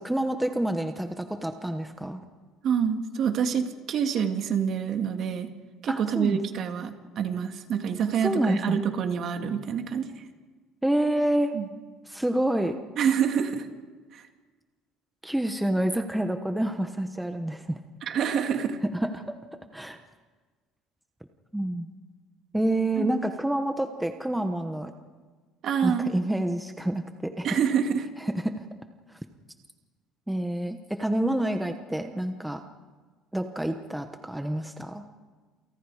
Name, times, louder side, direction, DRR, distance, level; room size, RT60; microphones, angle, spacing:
voice 1, 0.0-2.2 5.8-6.4 8.2-8.8 10.8-11.5 12.1-12.8 15.2-17.8 18.9-19.3 19.7-20.0 21.5-21.9 22.5-24.9 25.8-27.5 28.3-28.6 30.3-32.6 33.3-35.0, right 1 dB, 5° right, 6 dB, 1.1 m, -28 dB
voice 2, 2.6-5.5 5.8-10.1 11.5-11.7 13.0-13.7 14.1-14.3 18.0-18.8 23.0-23.1 25.6-26.1 27.4-28.1, right 7 dB, 45° right, 6 dB, 2.2 m, -27 dB
29.0 x 28.5 x 4.9 m, 1.4 s
cardioid pair, 155°, 0 cm